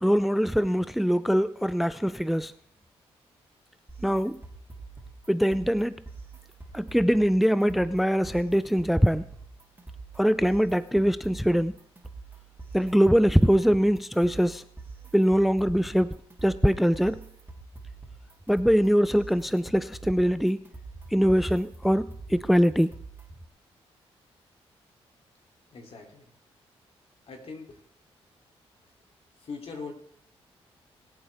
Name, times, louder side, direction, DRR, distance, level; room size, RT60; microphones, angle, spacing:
voice 1, 0.0-2.5 4.0-4.4 5.3-6.0 6.7-9.2 10.2-11.7 12.7-14.6 15.1-17.2 18.5-20.6 21.1-22.9, equal, ahead, 0.4 m, -23 dB
sound 1, 3.9-23.5, right 4 dB, 20° right, 3.1 m, -45 dB
voice 2, 25.7-26.3 27.3-27.8 29.4-29.9, left 4 dB, 60° left, 3.1 m, -41 dB
21.5 x 8.7 x 3.5 m
supercardioid pair, 60°, 11 cm